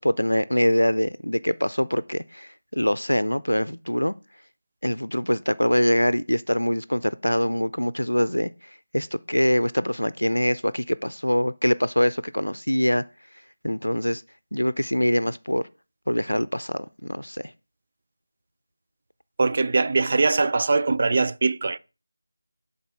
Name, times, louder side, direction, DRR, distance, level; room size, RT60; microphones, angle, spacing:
voice 1, 0.0-4.1 4.8-8.5 8.9-13.0 13.6-14.2 14.5-15.6 16.1-17.4, equal, 80° left, 0.5 m, -24 dB
voice 2, 19.4-21.8, right 3 dB, 35° right, 0.4 m, -22 dB
11.0 x 4.1 x 4.7 m
figure-of-eight pair, 165°, 0 cm